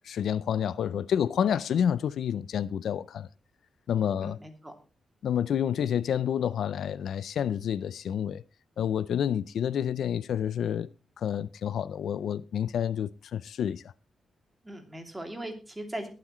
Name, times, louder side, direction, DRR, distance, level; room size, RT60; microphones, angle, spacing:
voice 1, 0.0-3.3 3.9-4.4 5.2-8.4 8.8-10.9 11.2-13.9, left 9 dB, 75° left, 0.5 m, -29 dB
voice 2, 4.2-4.7 14.6-16.1, right 1 dB, 10° right, 2.7 m, -39 dB
21.0 x 7.7 x 3.1 m
wide cardioid pair, 140°, 0 cm